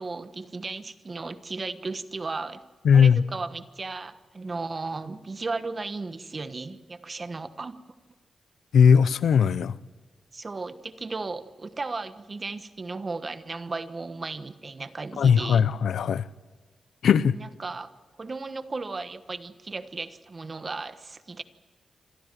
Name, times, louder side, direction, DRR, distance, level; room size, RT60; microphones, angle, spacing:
voice 1, 0.0-2.6 2.9-7.8 10.3-15.6 17.3-17.9 18.2-21.4, right 3 dB, 35° right, 11 dB, 1.2 m, -35 dB
voice 2, 2.9-3.2 8.7-9.7 15.2-16.2 17.0-17.3, left 7 dB, 85° left, 18 dB, 0.6 m, -18 dB
26.5 x 13.5 x 9.1 m, 1.4 s
cardioid pair, 85°, 0 cm